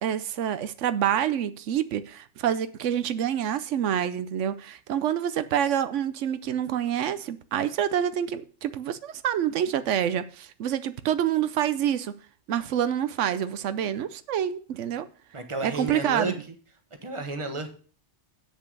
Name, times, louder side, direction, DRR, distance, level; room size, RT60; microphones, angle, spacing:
voice 1, 0.0-12.2 12.5-15.1 15.6-16.3, right 10 dB, 90° right, 13 dB, 1.0 m, -27 dB
voice 2, 15.3-16.5 17.0-17.7, right 3 dB, 25° right, 7 dB, 1.2 m, -32 dB
8.2 x 6.5 x 6.5 m, 0.42 s
omnidirectional pair, 1.2 m